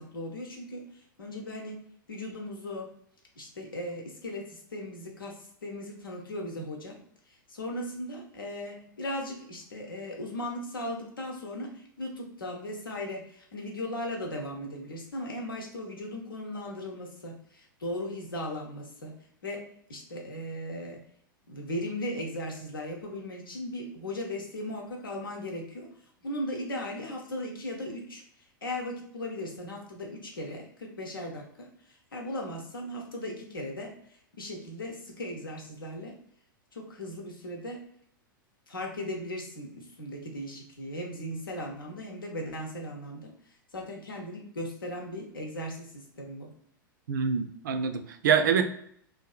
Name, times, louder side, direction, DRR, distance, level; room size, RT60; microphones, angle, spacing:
voice 1, 0.0-1.8 2.1-2.9 3.4-7.0 7.3-19.2 19.4-19.6 19.9-21.0 21.5-25.9 26.2-28.2 28.6-33.9 34.4-36.1 36.7-37.8 38.7-43.3 43.7-46.5, left 1 dB, 80° left, 0 dB, 0.8 m, -37 dB
voice 2, 47.1-48.7, right 7 dB, 65° right, 8 dB, 0.4 m, -25 dB
2.6 x 2.6 x 2.4 m, 0.67 s
figure-of-eight pair, 95°, 11 cm